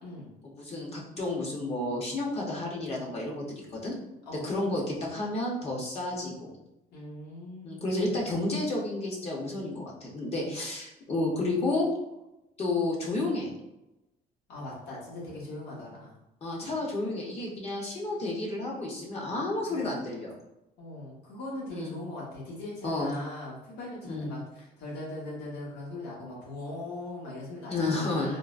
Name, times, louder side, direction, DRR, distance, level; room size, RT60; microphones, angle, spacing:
voice 1, 0.4-3.4 3.7-3.9 4.3-6.5 7.6-11.9 12.6-13.5 16.4-20.3 21.7-22.0 22.8-23.1 24.0-24.3 27.7-28.4, left 2 dB, 40° left, -2 dB, 0.9 m, -31 dB
voice 2, 6.9-8.0 14.5-16.1 19.7-19.9 20.8-28.4, left 2 dB, 85° left, -5 dB, 1.3 m, -40 dB
3.7 x 2.2 x 2.5 m, 0.92 s
cardioid pair, 110°, 17 cm